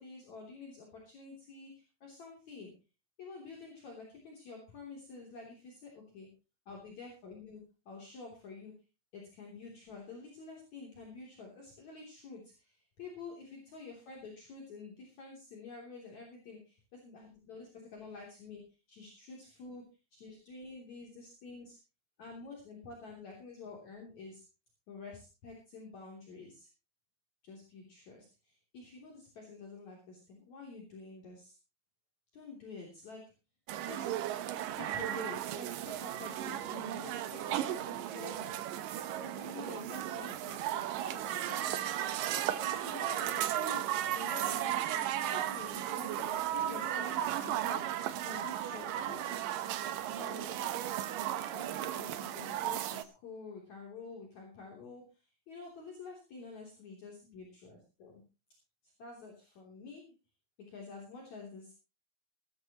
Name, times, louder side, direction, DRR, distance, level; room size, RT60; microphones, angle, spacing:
voice 1, 0.0-2.7 3.2-6.3 6.7-8.7 9.1-18.6 18.9-19.8 20.1-21.8 22.2-24.4 24.9-26.7 27.4-31.6 32.3-33.2 33.8-34.3 34.7-49.7 50.0-50.9 51.5-58.2 59.0-60.1 60.7-61.7, left 4 dB, 50° left, -1 dB, 4.3 m, -49 dB
sound 1, 33.7-53.0, right 12 dB, 70° right, 2.4 m, -35 dB
18.5 x 14.0 x 3.0 m, 0.32 s
omnidirectional pair, 4.5 m